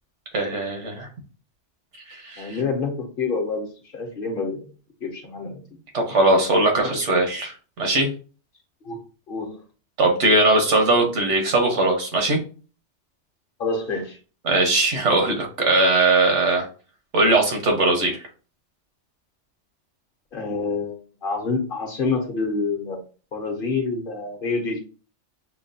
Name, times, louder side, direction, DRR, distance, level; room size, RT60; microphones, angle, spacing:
voice 1, 0.3-1.1 2.1-2.6 5.9-8.1 10.0-12.4 14.4-16.7 17.1-18.3, right 2 dB, 85° right, 2 dB, 1.4 m, -20 dB
voice 2, 2.4-4.7 5.0-5.6 6.8-6.9 8.8-9.0 9.3-9.6 13.6-14.2 20.3-23.0 23.3-24.8, left 4 dB, 55° left, 4 dB, 0.9 m, -27 dB
5.7 x 2.2 x 2.6 m, 0.37 s
omnidirectional pair, 1.2 m